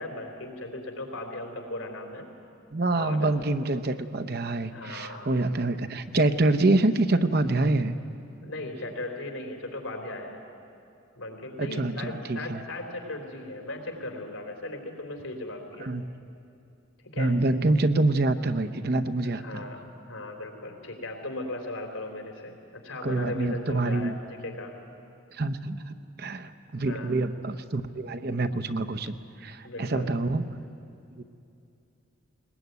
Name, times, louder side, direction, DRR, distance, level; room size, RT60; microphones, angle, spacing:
voice 1, 0.0-2.3 2.9-3.3 4.7-5.3 8.4-10.4 11.2-15.9 17.0-17.4 19.4-19.8 20.1-24.7 26.8-27.2 29.6-30.1, left 2 dB, 85° left, 3 dB, 3.7 m, -37 dB
voice 2, 2.7-8.0 11.6-12.6 15.8-16.2 17.2-19.7 23.0-24.2 25.3-30.6 31.2-31.3, right 2 dB, 50° right, 10 dB, 0.8 m, -26 dB
20.5 x 20.5 x 9.5 m, 2.7 s
head